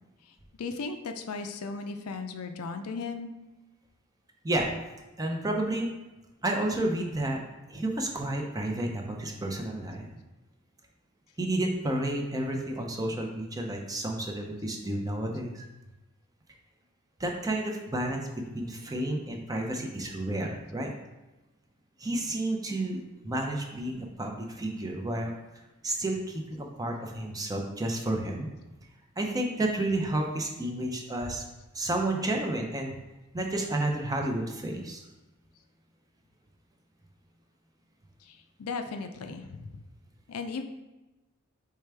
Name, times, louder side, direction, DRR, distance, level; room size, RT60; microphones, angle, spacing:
voice 1, 0.6-3.3 38.2-39.8 40.3-40.6, left 4 dB, 85° left, 7 dB, 0.4 m, -36 dB
voice 2, 5.2-5.9 6.4-7.4 7.7-10.1 11.4-15.6 17.2-18.2 18.5-20.9 22.0-25.3 25.8-28.5 29.2-31.4 31.7-33.0 33.3-35.0, right 1 dB, 15° right, 1 dB, 0.5 m, -31 dB
4.7 x 3.3 x 3.3 m, 1.1 s
head